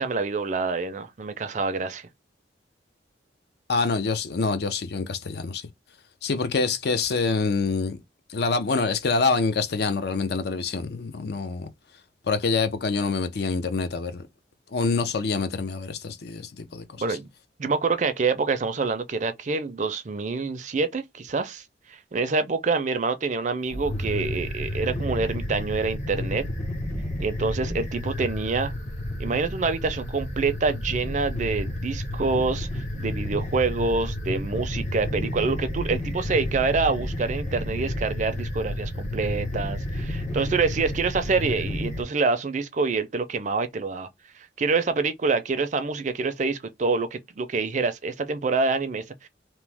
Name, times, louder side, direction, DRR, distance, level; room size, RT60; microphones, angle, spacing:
voice 1, 0.0-2.1 17.0-17.3 17.6-21.6 21.9-26.4 27.2-28.7 29.2-44.1 44.6-49.3, right 4 dB, 40° right, 0.4 m, -26 dB
voice 2, 3.7-5.7 6.2-8.0 8.3-11.7 12.3-14.2 14.7-17.2, left 4 dB, 60° left, 0.5 m, -26 dB
sound 1, 23.7-42.0, left 1 dB, 40° left, 1.0 m, -31 dB
3.0 x 2.1 x 3.3 m
head